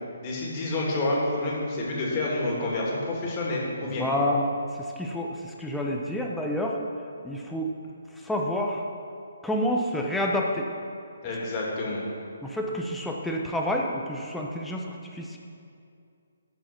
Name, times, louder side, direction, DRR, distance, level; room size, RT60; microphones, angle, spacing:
voice 1, 0.2-4.0 11.2-12.0, left 2 dB, 30° left, -4 dB, 2.5 m, -28 dB
voice 2, 3.8-4.5 4.8-6.8 7.2-7.7 8.2-8.8 9.4-10.7 12.4-15.4, left 1 dB, 5° left, -1 dB, 0.9 m, -28 dB
13.5 x 4.9 x 6.0 m, 2.5 s
figure-of-eight pair, 145°, 0 cm